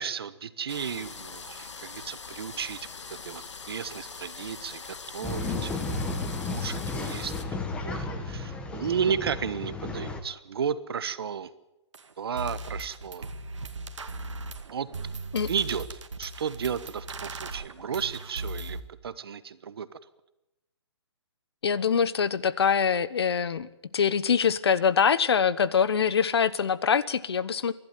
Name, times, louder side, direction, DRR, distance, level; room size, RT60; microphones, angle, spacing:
voice 1, 0.0-2.8 3.1-5.8 6.4-7.3 7.8-11.5 12.2-13.3 14.7-14.9 15.5-19.9, right 7 dB, 55° right, 14 dB, 1.3 m, -33 dB
sound 1, 0.7-7.5, left 5 dB, 80° left, 2.3 m, -42 dB
Male speech man speaking / Chatter / Rattle, 5.2-10.2, left 3 dB, 5° left, 1.3 m, -33 dB
sound 2, 11.9-12.0 12.4-18.8, right 2 dB, 90° right, 2.1 m, -38 dB
voice 2, 21.6-27.7, left 7 dB, 60° left, 18 dB, 1.1 m, -24 dB
28.0 x 12.0 x 9.2 m, 0.95 s
hypercardioid pair, 165°, 15 cm